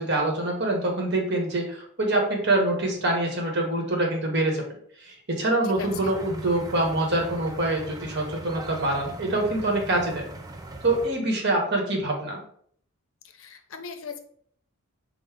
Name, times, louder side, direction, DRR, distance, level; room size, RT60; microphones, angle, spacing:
voice 1, 0.0-4.6 5.0-10.2 10.8-12.4, right 2 dB, 50° right, 1 dB, 1.1 m, -25 dB
voice 2, 5.6-6.2 13.3-14.2, left 5 dB, 65° left, 7 dB, 0.6 m, -38 dB
sound 1, 5.8-11.1, right 2 dB, 15° right, 0.4 m, -40 dB
5.3 x 2.1 x 4.7 m, 0.62 s
head